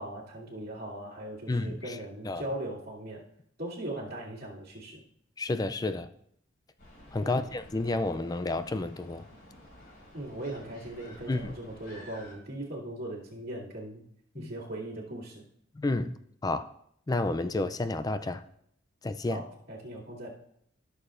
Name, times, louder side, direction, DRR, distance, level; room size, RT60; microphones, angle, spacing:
voice 1, 0.0-3.2 3.6-5.0 7.2-7.5 10.1-14.0 14.3-15.4 19.2-20.3, right 1 dB, 50° right, -7 dB, 2.5 m, -39 dB
voice 2, 1.5-2.0 2.2-2.4 5.4-6.1 7.1-9.3 11.3-11.5 14.4-14.5 15.8-16.2 16.4-16.7 17.1-18.4 19.0-19.4, left 2 dB, 20° left, 11 dB, 0.3 m, -30 dB
sound 1, 6.8-12.4, left 1 dB, 50° left, 4.2 m, -52 dB
15.0 x 6.8 x 2.5 m, 0.71 s
head